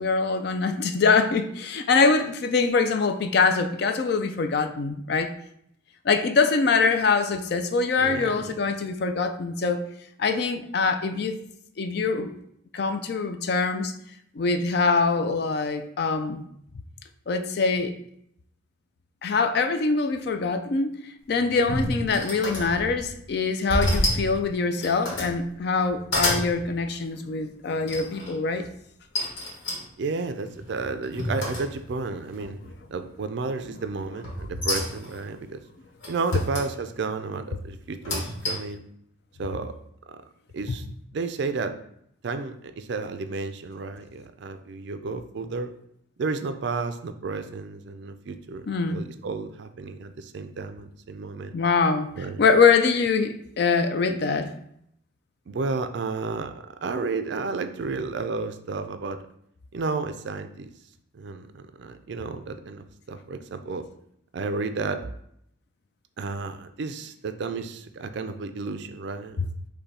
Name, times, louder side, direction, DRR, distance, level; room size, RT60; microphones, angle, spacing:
voice 1, 0.0-5.3 6.0-9.8 10.2-11.4 11.8-12.3 12.7-13.9 14.3-16.5 17.3-17.9 19.2-28.7 32.6-32.7 40.7-40.8 48.7-49.1 51.5-54.5 69.4-69.5, left 4 dB, 50° left, 8 dB, 0.4 m, -24 dB
voice 2, 8.0-8.5 30.0-32.6 32.9-35.6 36.1-38.8 39.4-39.7 40.1-40.2 40.5-40.8 41.1-41.8 42.2-45.7 46.2-51.5 52.2-52.4 55.5-59.2 59.7-60.7 61.1-63.8 64.3-65.1 66.2-69.5, right 4 dB, 55° right, 9 dB, 0.3 m, -32 dB
sound 1, 21.3-23.1 23.7-24.3 24.7-25.4 25.8-26.5 27.9-28.3 29.1-32.0 32.4-32.9 34.2-35.2 36.0-36.7 37.8-38.8, left 1 dB, 65° left, 1.4 m, -29 dB
5.4 x 2.2 x 4.1 m, 0.71 s
head